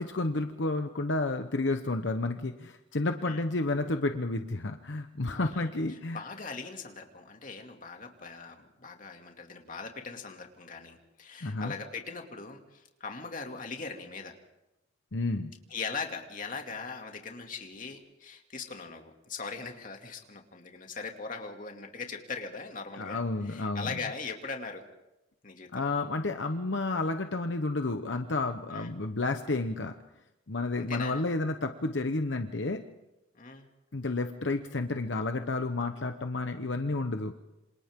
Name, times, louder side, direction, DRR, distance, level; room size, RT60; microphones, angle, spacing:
voice 1, 0.0-6.2 11.4-11.7 15.1-15.5 23.0-24.0 25.7-29.9 30.5-32.8 33.9-37.3, left 2 dB, 75° left, 6 dB, 1.0 m, -31 dB
voice 2, 5.3-14.3 15.7-24.8 25.4-25.9 28.7-28.9 30.7-31.2 33.3-33.7, left 4 dB, 45° left, 3 dB, 2.5 m, -40 dB
27.5 x 27.0 x 3.8 m, 0.96 s
head